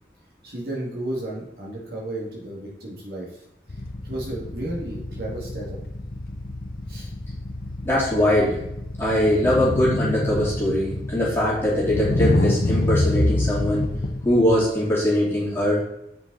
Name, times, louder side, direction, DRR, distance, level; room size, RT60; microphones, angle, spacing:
voice 1, 0.4-3.3 4.0-5.8 6.9-7.1, right 1 dB, 60° right, -3 dB, 2.2 m, -33 dB
sound 1, 3.7-14.7, left 2 dB, 55° left, 0.7 m, -26 dB
voice 2, 7.8-8.6 9.0-13.8 14.2-15.8, left 1 dB, 15° left, -8 dB, 2.8 m, -21 dB
7.7 x 5.3 x 4.0 m, 0.82 s
head